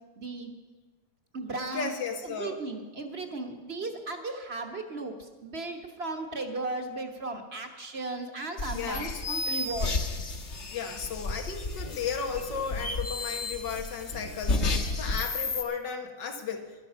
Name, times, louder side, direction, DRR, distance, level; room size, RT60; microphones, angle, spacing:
voice 1, 0.2-0.5 1.3-1.9 2.2-10.2, right 2 dB, 40° right, 5 dB, 1.3 m, -36 dB
voice 2, 1.7-2.6 8.7-9.2 10.7-16.6, left 6 dB, 85° left, 5 dB, 2.0 m, -34 dB
sound 1, 8.6-15.6, left 3 dB, 45° left, 1.4 m, -32 dB
11.5 x 11.0 x 6.8 m, 1.3 s
omnidirectional pair, 1.9 m